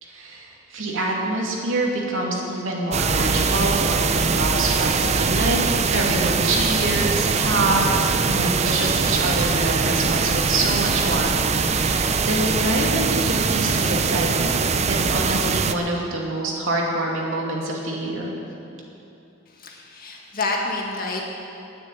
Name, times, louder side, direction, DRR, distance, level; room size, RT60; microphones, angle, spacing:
voice 1, 0.0-5.6 5.9-14.6 14.9-18.3, right 2 dB, 75° right, -2 dB, 2.6 m, -25 dB
sound 1, 2.9-15.7, right 5 dB, 35° right, 0.5 m, -22 dB
voice 2, 19.5-21.2, left 2 dB, 50° left, 0 dB, 1.9 m, -28 dB
10.0 x 9.8 x 9.7 m, 2.8 s
head